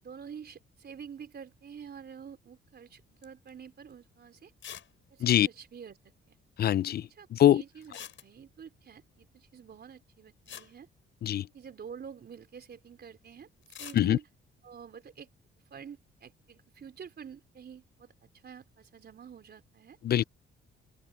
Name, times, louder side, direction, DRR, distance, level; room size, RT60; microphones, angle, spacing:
voice 1, 0.0-4.5 5.1-6.0 6.3-6.4 7.1-10.9 11.5-14.3 14.6-15.3 15.7-20.0, right 7 dB, 50° right, 4.2 m, -48 dB
sound 1, 3.2-3.5 3.9-4.0 4.6-4.9 5.2-5.3 5.5-5.6 7.8-8.7 10.0-10.1 10.5-11.7 13.6-14.1, left 9 dB, 65° left, 7.6 m, -46 dB
voice 2, 6.6-7.6 11.2-11.5 13.9-14.2 20.0-20.2, left 11 dB, 50° left, 0.4 m, -24 dB
open air
cardioid pair, 85°, 21 cm